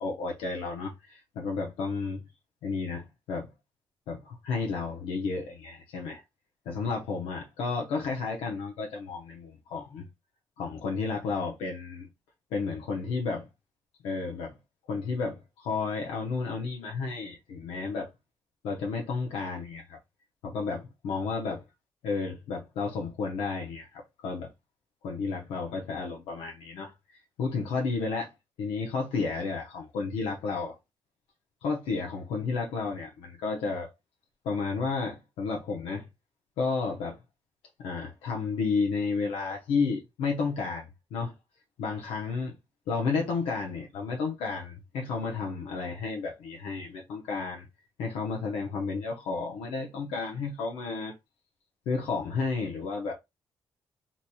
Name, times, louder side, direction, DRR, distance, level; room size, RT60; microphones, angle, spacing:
voice 1, 0.0-2.2 2.6-3.5 4.1-6.2 6.7-10.1 10.6-12.1 12.5-13.5 14.0-14.5 14.9-18.1 18.6-20.0 20.4-21.6 22.0-24.5 25.0-26.9 27.4-28.3 28.6-30.8 31.6-33.9 34.4-36.0 36.6-37.2 37.8-41.3 41.8-42.5 42.9-47.7 48.0-51.1 51.9-53.1, left 4 dB, 85° left, 0.6 m, -32 dB
2.8 x 2.8 x 2.2 m
supercardioid pair, 55°, 9 cm